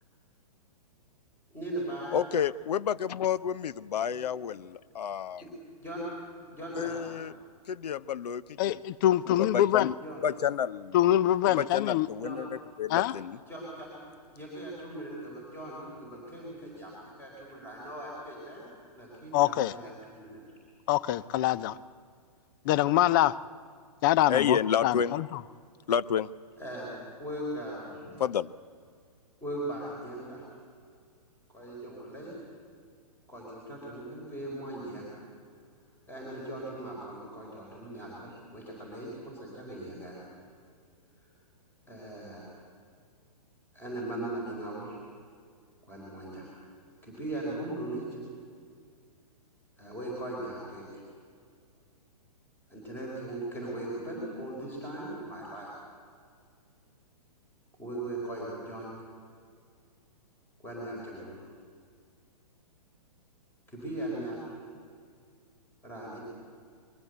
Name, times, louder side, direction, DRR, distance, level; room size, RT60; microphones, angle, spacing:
voice 1, 1.5-2.2 4.1-4.2 5.4-5.5 5.8-6.0 6.5-7.0 10.0-10.2 12.2-12.4 13.5-13.9 14.3-18.7 18.9-20.4 26.6-28.2 29.4-30.4 31.5-32.3 33.3-35.1 36.1-40.2 41.9-42.5 43.7-45.0 45.9-46.5 47.0-48.2 49.8-51.0 52.7-55.7 57.8-58.9 60.6-61.4 63.7-64.4 65.8-66.2, right 1 dB, 10° left, -4 dB, 4.5 m, -39 dB
voice 2, 2.1-5.4 6.8-7.3 7.7-8.8 9.4-9.9 10.2-11.0 11.5-12.5 12.8-13.4 24.3-25.1 25.9-26.3 28.2-28.5, left 8 dB, 80° left, 18 dB, 0.6 m, -30 dB
voice 3, 8.6-9.9 10.9-12.1 12.9-13.1 19.3-19.7 20.9-21.8 22.7-23.4 24.0-25.3, left 13 dB, 30° left, 18 dB, 0.4 m, -24 dB
22.0 x 14.5 x 8.0 m, 2.1 s
hypercardioid pair, 145°, 20 cm